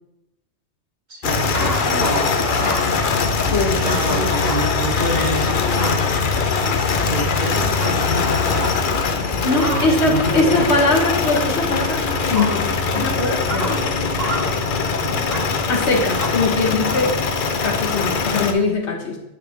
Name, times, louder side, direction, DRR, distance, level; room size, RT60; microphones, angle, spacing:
voice 1, 1.1-2.3 3.8-6.3 7.1-8.8 9.5-10.7 15.0-15.6, equal, 40° right, 1 dB, 1.1 m, -28 dB
sound 1, 1.2-18.5, left 4 dB, 50° left, 0.8 m, -21 dB
sound 2, 1.5-2.9 3.6-3.7 4.1-4.2 4.4-4.6 5.5-6.0 6.6-7.5 7.7-7.9 8.6-8.9 9.6-9.9 10.9-11.2 11.8-11.9 12.3-12.5 12.9-13.0 13.5-13.7 14.2-14.5 15.3-15.4 16.2-16.3 16.9-17.2, right 2 dB, 60° right, 1.5 m, -29 dB
voice 2, 3.5-4.5 9.2-13.8 15.7-17.2 17.6-19.2, left 3 dB, 70° left, 1 dB, 1.5 m, -21 dB
7.3 x 6.5 x 3.6 m, 0.91 s
omnidirectional pair, 1.2 m